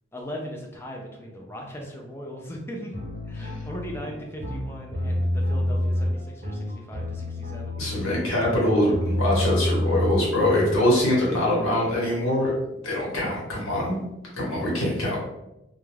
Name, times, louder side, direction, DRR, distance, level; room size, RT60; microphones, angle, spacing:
voice 1, 0.1-2.9 3.2-7.8, equal, 10° left, 0 dB, 0.3 m, -38 dB
sound 1, 2.9-10.8, left 1 dB, 35° right, 0.7 m, -28 dB
voice 2, 7.8-12.5 12.8-14.0 14.4-15.2, left 1 dB, 90° left, -4 dB, 1.0 m, -23 dB
2.3 x 2.2 x 3.1 m, 0.92 s
head